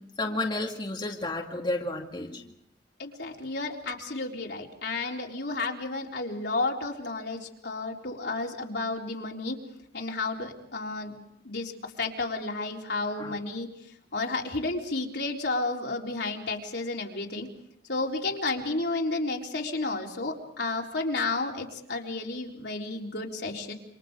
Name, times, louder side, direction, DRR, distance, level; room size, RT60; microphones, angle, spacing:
voice 1, 0.2-2.5 13.2-13.4, left 2 dB, 25° left, 0 dB, 2.3 m, -31 dB
voice 2, 3.0-9.6 9.9-11.2 11.4-13.7 14.1-17.5 17.9-23.7, left 3 dB, 70° left, 0 dB, 4.0 m, -32 dB
28.5 x 26.5 x 5.1 m, 0.73 s
head